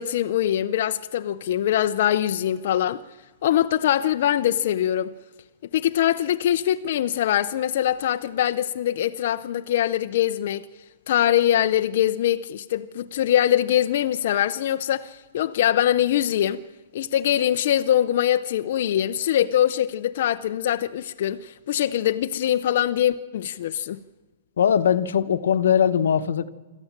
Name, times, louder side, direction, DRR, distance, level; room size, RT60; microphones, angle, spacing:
voice 1, 0.0-3.0 3.4-5.1 5.7-10.6 11.1-16.6 16.9-24.0, left 11 dB, 50° left, 0.7 m, -23 dB
voice 2, 24.6-26.5, left 8 dB, 90° left, 1.1 m, -20 dB
26.0 x 13.5 x 7.4 m
hypercardioid pair, 170°, 0 cm